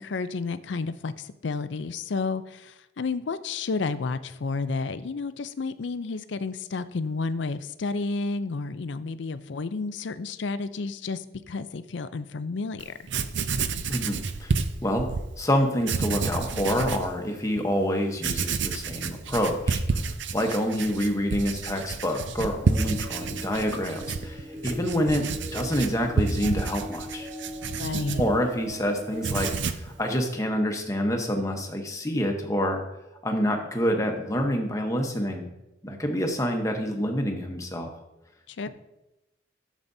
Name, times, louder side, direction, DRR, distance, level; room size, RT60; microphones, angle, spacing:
voice 1, 0.0-12.9 27.8-28.2 38.5-38.7, left 4 dB, 75° left, 13 dB, 0.5 m, -31 dB
Writing, 12.8-12.9 13.1-15.3 15.8-17.1 17.6-17.7 18.2-28.8 29.1-29.9, right 4 dB, 75° right, 0.6 m, -30 dB
voice 2, 13.9-14.5 14.8-15.1 15.4-25.3 25.5-27.3 28.2-32.8 33.2-35.5 35.8-37.9, equal, 15° left, 3 dB, 1.0 m, -27 dB
sound 1, 22.8-29.5, equal, 40° right, 3.0 m, -40 dB
13.0 x 7.3 x 2.7 m, 0.94 s
head